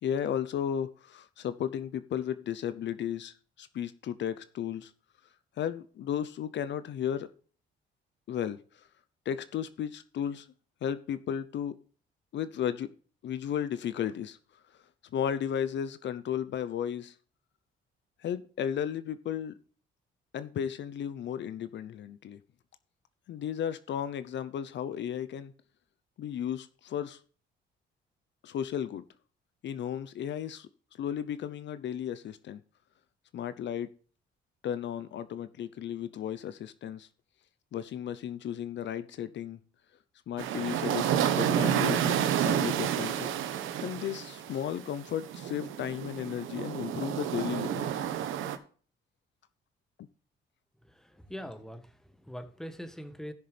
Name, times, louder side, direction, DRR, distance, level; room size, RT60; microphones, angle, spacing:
voice 1, 0.0-4.9 5.6-7.3 8.3-8.9 9.3-10.5 10.8-11.7 12.3-12.9 13.2-14.4 15.1-17.1 18.2-19.5 20.3-22.4 23.3-25.5 26.2-27.2 28.4-29.0 29.6-32.6 33.3-33.9 34.6-37.1 37.7-39.6 40.3-47.9, left 9 dB, 65° left, 0.7 m, -34 dB
sound 1, 40.4-48.6, right 10 dB, 85° right, 1.1 m, -30 dB
voice 2, 50.8-53.3, equal, ahead, 1.5 m, -43 dB
15.5 x 6.7 x 3.4 m
cardioid pair, 90°, 20 cm